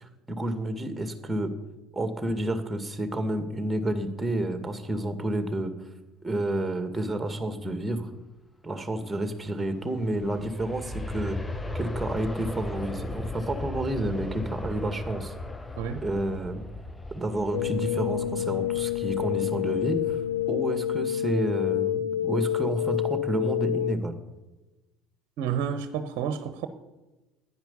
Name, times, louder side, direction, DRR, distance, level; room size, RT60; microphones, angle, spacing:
voice 1, 0.0-1.5 1.9-5.7 6.2-8.1 8.6-11.4 11.7-15.3 16.0-16.6 17.1-20.2 20.5-24.1, right 1 dB, 10° right, 2.0 m, -30 dB
Aircraft, 9.6-20.5 20.9-21.0, left 2 dB, 15° left, 1.0 m, -38 dB
sound 1, 17.5-24.0, left 12 dB, 75° left, 0.5 m, -28 dB
voice 2, 25.4-26.7, right 8 dB, 60° right, 0.9 m, -30 dB
10.5 x 9.9 x 8.5 m
figure-of-eight pair, 65°, 0 cm